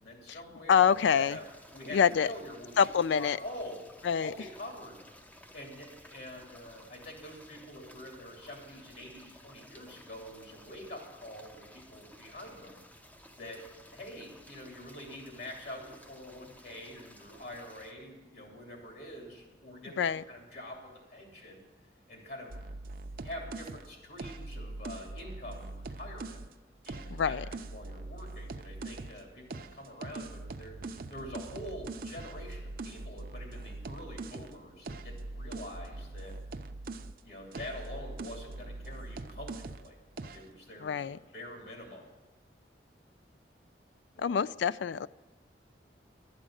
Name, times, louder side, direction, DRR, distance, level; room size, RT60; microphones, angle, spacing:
voice 1, 0.0-2.7 3.1-3.8 4.2-5.0 5.5-12.8 13.4-13.6 13.9-21.6 22.1-22.6 23.2-26.4 26.8-36.4 37.2-40.0 40.3-42.1 44.1-44.6, left 1 dB, 65° left, 0 dB, 2.9 m, -45 dB
voice 2, 0.7-1.4 1.9-2.3 2.8-3.4 4.0-4.3 20.0-20.2 27.1-27.5 40.8-41.2 44.2-45.1, left 7 dB, 85° left, 18 dB, 0.4 m, -26 dB
sound 1, 0.9-17.9, left 1 dB, 10° left, 0.5 m, -56 dB
sound 2, 22.5-26.5 26.8-29.2 29.5-37.2 37.5-39.9 40.2-40.5, right 2 dB, 50° right, 0.5 m, -42 dB
12.5 x 8.8 x 6.4 m, 1.2 s
head